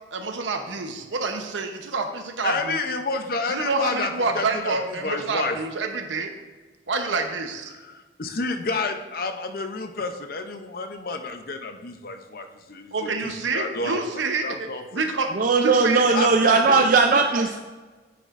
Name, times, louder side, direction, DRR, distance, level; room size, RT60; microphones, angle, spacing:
voice 1, 0.1-2.8 3.5-6.3 6.9-7.7 12.9-15.3 15.6-16.0 16.7-16.9 17.4-17.5, right 3 dB, 90° right, 6 dB, 0.8 m, -28 dB
voice 2, 2.4-5.6 7.7-14.0 14.4-15.0 16.1-16.9, left 3 dB, 50° left, 7 dB, 0.6 m, -30 dB
voice 3, 15.4-17.6, right 4 dB, 45° right, 4 dB, 0.4 m, -18 dB
9.3 x 6.8 x 2.5 m, 1.3 s
head